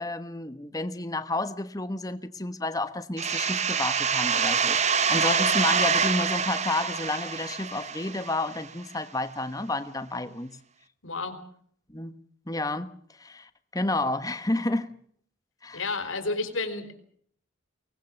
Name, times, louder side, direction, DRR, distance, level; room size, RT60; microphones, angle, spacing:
voice 1, 0.0-10.6 11.9-12.2 12.5-14.9 15.6-15.8, left 2 dB, 20° left, 11 dB, 1.3 m, -31 dB
sound 1, 3.2-8.7, right 6 dB, 35° right, 1.0 m, -26 dB
voice 2, 11.0-11.4 15.7-17.0, left 3 dB, 85° left, 9 dB, 4.1 m, -31 dB
24.0 x 19.5 x 7.2 m, 0.62 s
head